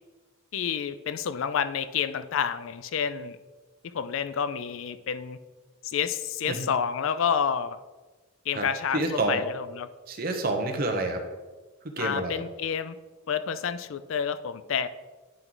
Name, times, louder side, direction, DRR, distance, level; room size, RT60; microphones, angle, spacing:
voice 1, 0.5-3.4 3.9-5.4 5.8-7.8 8.5-9.9 12.0-13.0 13.3-14.9, left 7 dB, 65° left, 13 dB, 0.4 m, -29 dB
voice 2, 8.9-9.4 10.1-11.2 12.0-12.4, right 2 dB, 40° right, 4 dB, 0.9 m, -28 dB
9.8 x 4.5 x 3.9 m, 1.3 s
head